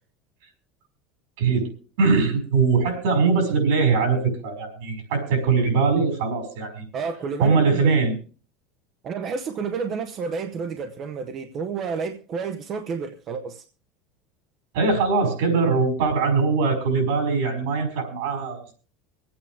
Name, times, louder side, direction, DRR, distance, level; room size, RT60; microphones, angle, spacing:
voice 1, 1.4-1.7 2.0-6.8 7.4-8.1 14.7-18.7, right 4 dB, 70° right, 5.0 m, -21 dB
voice 2, 6.9-7.9 9.0-13.6, right 5 dB, 30° right, 0.7 m, -30 dB
25.5 x 8.7 x 3.4 m
cardioid pair, 180°, 0 cm